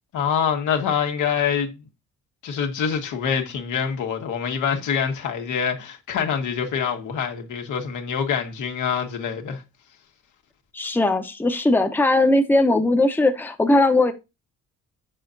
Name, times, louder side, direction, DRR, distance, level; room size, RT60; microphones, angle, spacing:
voice 1, 0.1-1.8 2.4-9.6, left 7 dB, 80° left, 1.7 m, -25 dB
voice 2, 10.7-14.1, left 2 dB, 5° left, 0.9 m, -19 dB
6.9 x 6.7 x 2.6 m
cardioid pair, 90°, 30 cm